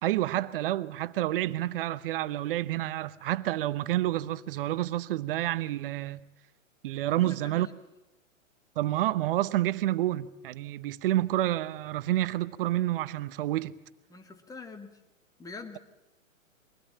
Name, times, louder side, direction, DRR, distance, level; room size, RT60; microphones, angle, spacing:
voice 1, 0.0-6.2 6.8-7.7 8.8-13.7, right 14 dB, 45° right, 0.9 m, -29 dB
voice 2, 7.1-7.7 14.1-15.0 15.4-15.8, left 4 dB, 10° left, 1.7 m, -44 dB
23.0 x 17.0 x 8.8 m
hypercardioid pair, 130°, 40 cm